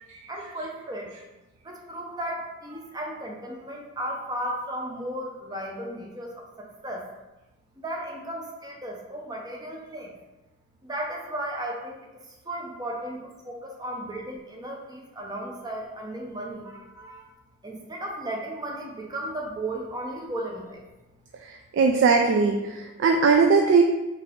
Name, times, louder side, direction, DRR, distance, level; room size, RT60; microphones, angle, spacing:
voice 1, 0.3-1.1 1.6-7.0 7.8-10.1 10.8-12.0 12.4-17.2 17.6-20.8, right 1 dB, 20° right, 0 dB, 0.6 m, -35 dB
voice 2, 21.5-23.8, right 4 dB, 60° right, 3 dB, 0.3 m, -20 dB
3.9 x 2.8 x 3.6 m, 1.1 s
head